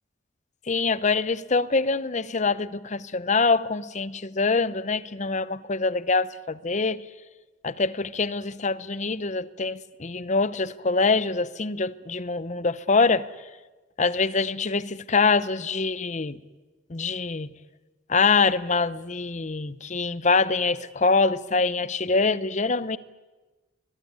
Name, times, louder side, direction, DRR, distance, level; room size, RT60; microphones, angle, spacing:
voice 1, 0.7-7.1 7.6-13.3 14.0-16.4 16.9-17.5 18.1-23.0, left 4 dB, 35° left, 0.7 m, -24 dB
21.5 x 21.5 x 9.6 m
head